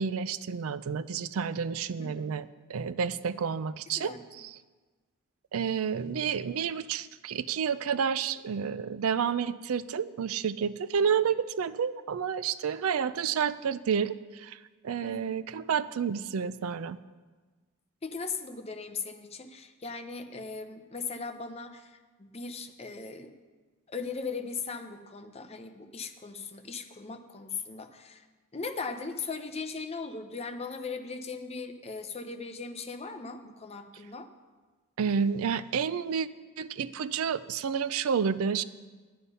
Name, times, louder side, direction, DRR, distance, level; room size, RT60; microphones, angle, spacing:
voice 1, 0.0-4.6 5.5-14.6 14.8-17.0 35.0-36.3 36.6-38.6, right 7 dB, 75° right, 15 dB, 0.4 m, -30 dB
voice 2, 2.0-2.4 4.0-4.2 15.0-15.4 18.0-23.3 23.9-28.2 28.5-34.3, left 4 dB, 30° left, 7 dB, 0.7 m, -38 dB
11.5 x 9.7 x 5.5 m, 1.3 s
head